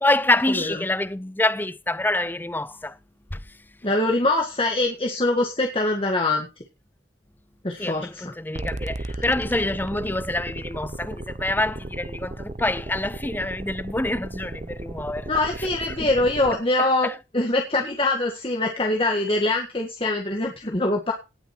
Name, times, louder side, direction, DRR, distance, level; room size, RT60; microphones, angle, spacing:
voice 1, 0.0-3.0 3.3-3.4 7.8-15.3 15.6-15.7 16.0-16.1 16.8-17.1, left 2 dB, 10° left, 0.5 m, -26 dB
voice 2, 3.8-6.5 7.6-8.3 9.1-9.3 15.3-21.1, left 2 dB, 30° left, 1.8 m, -23 dB
sound 1, 8.5-16.6, right 2 dB, 35° right, 0.7 m, -35 dB
18.5 x 6.6 x 4.5 m
head